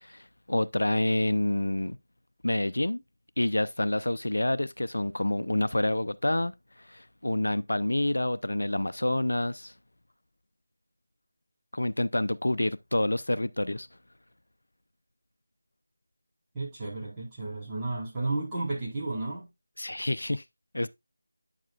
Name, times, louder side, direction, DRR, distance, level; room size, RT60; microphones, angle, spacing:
voice 1, 0.0-2.0 2.4-3.0 3.4-9.7 11.7-13.9 19.8-20.4 20.7-20.9, left 1 dB, 75° left, 0.5 m, -28 dB
voice 2, 16.5-19.5, right 2 dB, 10° right, 4.2 m, -33 dB
9.9 x 7.3 x 2.4 m
figure-of-eight pair, 165°, 0 cm